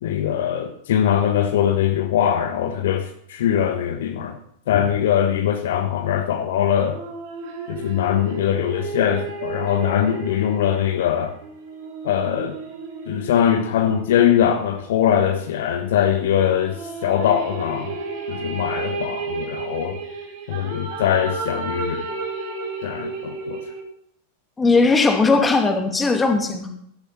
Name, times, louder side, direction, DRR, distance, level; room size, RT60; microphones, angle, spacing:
voice 1, 0.0-4.4 4.7-7.0 7.7-11.3 12.0-12.5 13.1-17.9 18.3-20.0 20.5-22.1 22.8-23.6, left 9 dB, 55° left, 6 dB, 1.2 m, -21 dB
sound 1, 6.9-14.6 16.4-23.8, right 4 dB, 50° right, 2.8 m, -33 dB
voice 2, 24.6-26.7, left 3 dB, 10° left, 3 dB, 2.5 m, -18 dB
15.5 x 12.0 x 4.3 m, 0.68 s
figure-of-eight pair, 90°, 0 cm